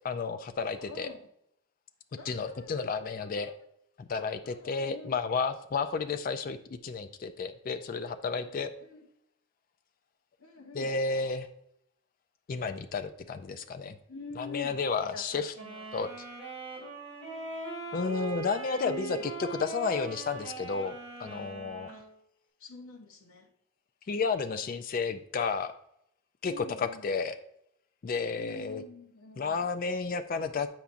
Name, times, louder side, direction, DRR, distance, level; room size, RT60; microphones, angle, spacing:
voice 1, 0.0-1.1 2.3-3.5 4.0-8.7 10.7-11.5 12.5-13.9 14.4-15.5 15.9-16.1 17.9-20.9 21.2-21.9 24.1-25.7 26.4-27.4 28.0-28.8 29.4-30.7, left 4 dB, 40° left, 9 dB, 0.3 m, -32 dB
voice 2, 0.6-1.3 2.1-3.5 4.4-5.2 8.3-8.4 8.8-9.0 10.4-11.0 14.1-16.1 18.7-19.3 21.9-22.1 22.6-23.5 26.5-27.1 28.3-29.9, left 4 dB, 75° left, 2 dB, 0.8 m, -46 dB
sound 1, 15.5-22.1, right 3 dB, 30° right, 2.4 m, -40 dB
6.9 x 5.9 x 2.5 m, 0.74 s
head